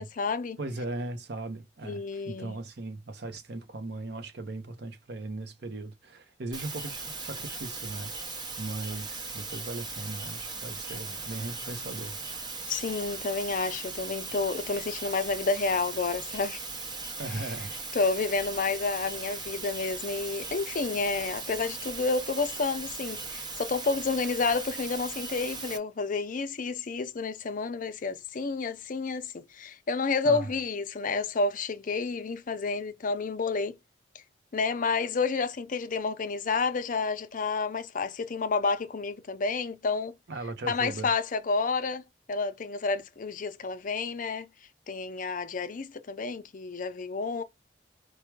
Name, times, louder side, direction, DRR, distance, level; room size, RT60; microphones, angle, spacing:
voice 1, 0.0-0.6 1.8-2.6 12.7-16.6 17.9-33.7 34.1-34.2 34.5-40.1 40.7-42.0 42.3-44.5 44.9-47.4, left 4 dB, 50° left, 0.5 m, -30 dB
voice 2, 0.6-12.2 17.2-17.8 30.2-30.5 40.3-41.1, right 2 dB, 65° right, 0.7 m, -38 dB
sound 1, 6.5-25.8, right 3 dB, 25° right, 0.8 m, -38 dB
4.6 x 2.2 x 4.6 m
head